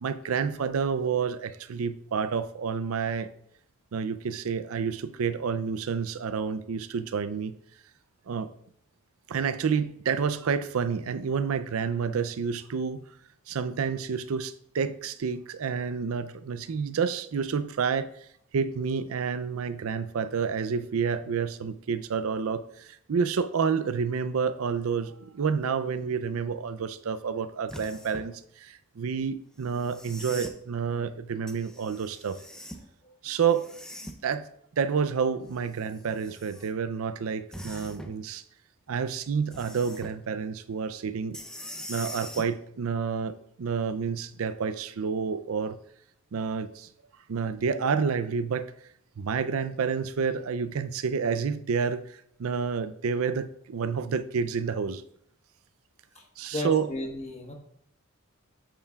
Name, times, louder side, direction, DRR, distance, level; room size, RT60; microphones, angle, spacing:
voice 1, 0.0-3.3 3.9-7.5 8.3-8.5 9.3-13.1 13.5-18.1 18.5-32.4 33.2-33.7 34.2-34.5 34.8-38.4 38.9-41.4 41.9-45.8 46.3-46.9 47.3-48.7 49.2-55.0 56.4-56.9, right 6 dB, 85° right, 13 dB, 0.5 m, -29 dB
sound 1, 27.7-28.3 29.7-30.6 31.5-32.9 33.4-34.3 35.5-36.7 37.5-38.2 39.5-40.2 41.3-42.5 44.2-44.3, equal, 5° left, 0.5 m, -43 dB
voice 2, 32.8-33.1 56.1-57.5, left 2 dB, 30° left, 2 dB, 1.2 m, -36 dB
8.9 x 6.6 x 2.3 m, 0.69 s
head